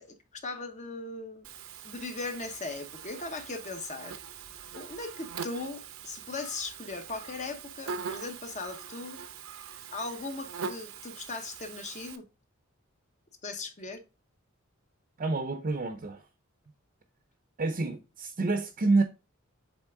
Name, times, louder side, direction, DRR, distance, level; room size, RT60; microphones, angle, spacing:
voice 1, 0.0-1.5 1.8-4.2 4.7-9.2 9.9-12.3 13.4-14.0, left 3 dB, 35° left, 0.9 m, -38 dB
Buzz, 1.4-12.2, right 6 dB, 75° right, 0.7 m, -42 dB
voice 2, 15.2-16.2 17.6-19.0, right 3 dB, 40° right, 0.6 m, -28 dB
8.1 x 3.4 x 3.5 m
head